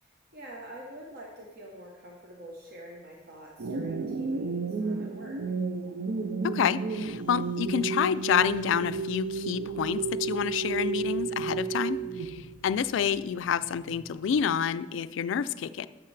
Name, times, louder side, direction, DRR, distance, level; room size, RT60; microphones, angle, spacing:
voice 1, 0.0-5.4, right 1 dB, 55° right, -1 dB, 0.9 m, -46 dB
sound 1, 3.6-12.6, right 4 dB, 80° right, 0.5 m, -32 dB
voice 2, 6.4-15.9, left 7 dB, 80° left, 15 dB, 0.3 m, -28 dB
sound 2, 7.0-14.4, left 1 dB, 25° left, 0.5 m, -52 dB
11.5 x 7.4 x 3.3 m, 1.2 s
head